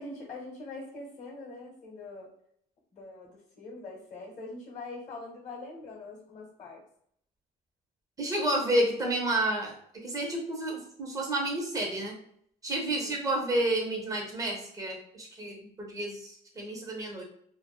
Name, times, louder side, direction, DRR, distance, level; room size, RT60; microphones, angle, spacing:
voice 1, 0.0-2.3 2.9-6.8 12.9-13.2, left 2 dB, 45° left, -2 dB, 0.8 m, -43 dB
voice 2, 8.2-9.7 10.0-12.1 12.6-17.2, right 1 dB, 20° right, 0 dB, 0.7 m, -30 dB
2.5 x 2.2 x 2.3 m, 0.69 s
cardioid pair, 110°, 17 cm